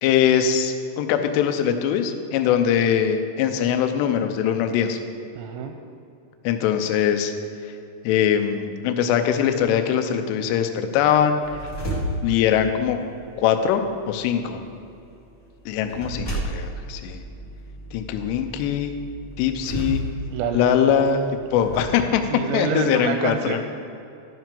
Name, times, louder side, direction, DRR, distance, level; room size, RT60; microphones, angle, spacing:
voice 1, 0.0-5.0 6.4-7.3 8.0-11.7 12.2-13.0 13.4-14.6 15.7-17.2 17.9-18.9 19.4-20.0 20.5-21.2 21.5-22.2 22.5-23.6, left 8 dB, 80° left, 7 dB, 2.6 m, -22 dB
voice 2, 5.4-5.8 20.3-21.0 22.3-23.6, right 6 dB, 80° right, 5 dB, 2.6 m, -27 dB
sound 1, 11.4-21.8, right 1 dB, 40° left, 1.4 m, -34 dB
12.5 x 6.0 x 5.3 m, 2.6 s
omnidirectional pair, 5.4 m